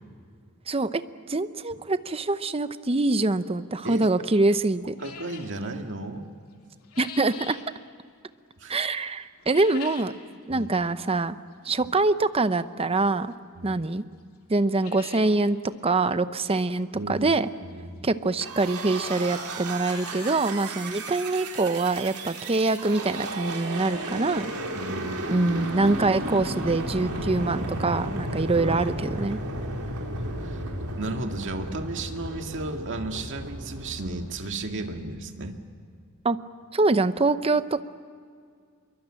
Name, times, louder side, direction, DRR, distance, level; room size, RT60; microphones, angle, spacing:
voice 1, 0.7-1.0 1.3-4.9 7.0-7.6 8.7-10.1 10.5-11.4 11.6-13.3 13.6-14.0 14.5-15.6 15.8-17.5 18.0-24.5 25.3-29.4 36.2-36.4 36.7-37.8, right 3 dB, 25° right, 12 dB, 0.7 m, -24 dB
sound 1, 5.0-5.6 6.5-7.7 9.4-10.2 10.6-10.7 11.5-11.6 13.3-13.4 13.8-13.9 14.2-14.3 14.6-15.4 15.7-15.8 16.0-16.1 17.7-17.8 18.6-18.7 18.9-19.0 19.5-20.5 20.8-20.9 21.4-21.5 21.9-22.0 23.7-23.8 24.0-24.1 24.5-24.6, left 6 dB, 70° left, 3.0 m, -43 dB
voice 2, 5.0-6.3 8.6-8.8 10.5-10.7 11.8-11.9 13.6-13.8 16.9-17.3 17.6-18.1 24.7-25.3 28.5-28.9 30.4-30.6 31.0-35.6, right 2 dB, 55° right, 4 dB, 2.0 m, -34 dB
sound 2, 18.4-35.0, right 1 dB, 80° right, 3.9 m, -34 dB
25.0 x 23.0 x 8.9 m, 2.2 s
head